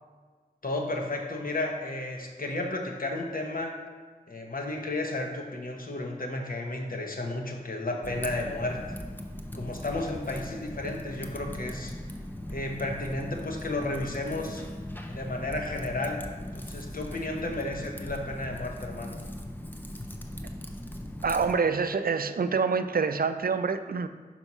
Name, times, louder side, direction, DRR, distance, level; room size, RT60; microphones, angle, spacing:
voice 1, 0.6-3.8 4.3-8.8 9.5-11.9 12.5-14.6 15.1-19.2, left 2 dB, 65° left, 1 dB, 1.0 m, -33 dB
Typing, 8.0-21.5, left 1 dB, 10° left, 0.6 m, -39 dB
voice 2, 21.2-24.1, right 5 dB, 70° right, 10 dB, 0.4 m, -26 dB
5.9 x 4.5 x 5.4 m, 1.4 s
wide cardioid pair, 45°, 16 cm